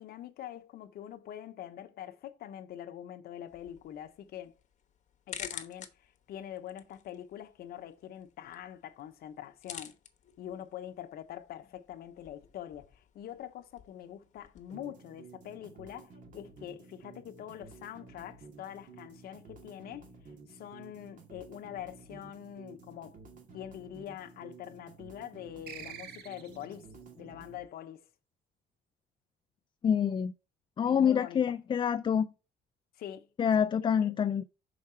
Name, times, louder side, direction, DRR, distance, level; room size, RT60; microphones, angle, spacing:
voice 1, 0.0-4.6 5.3-10.0 10.4-20.1 20.5-23.2 23.5-28.0 30.8-31.4 32.9-33.3 34.0-34.1, left 11 dB, 65° left, 0.9 m, -44 dB
sound 1, 3.5-14.7, left 8 dB, 45° left, 1.0 m, -50 dB
sound 2, 14.7-27.6, right 4 dB, 50° right, 2.1 m, -53 dB
sound 3, 25.7-26.8, right 8 dB, 70° right, 1.3 m, -46 dB
voice 2, 29.8-30.3 30.8-32.3 33.4-34.4, left 8 dB, 30° left, 0.4 m, -26 dB
5.9 x 4.7 x 4.4 m
cardioid pair, 110°, 17 cm